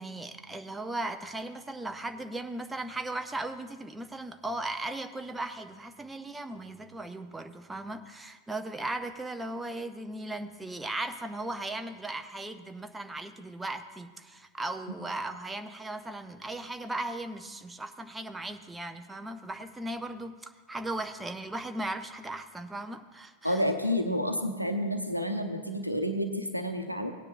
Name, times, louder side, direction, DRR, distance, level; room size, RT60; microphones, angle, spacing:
voice 1, 0.0-23.6, right 2 dB, 10° right, 8 dB, 0.5 m, -37 dB
voice 2, 23.4-27.1, equal, 90° right, 6 dB, 0.8 m, -29 dB
17.5 x 9.7 x 2.5 m, 1.4 s
figure-of-eight pair, 90°, 0 cm